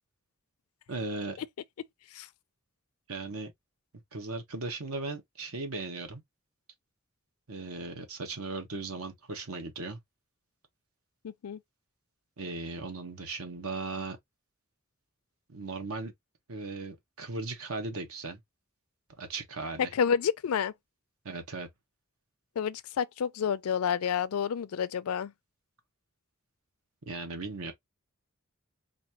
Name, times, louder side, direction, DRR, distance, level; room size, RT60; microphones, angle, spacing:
voice 1, 0.9-1.4 3.1-3.5 4.1-6.2 7.5-10.0 12.4-14.2 15.5-16.1 16.5-18.4 19.2-19.9 21.2-21.7 27.1-27.7, right 3 dB, 70° right, 1.2 m, -37 dB
voice 2, 11.2-11.6 19.8-20.7 22.6-25.3, left 7 dB, 75° left, 0.4 m, -29 dB
4.1 x 2.7 x 2.9 m
head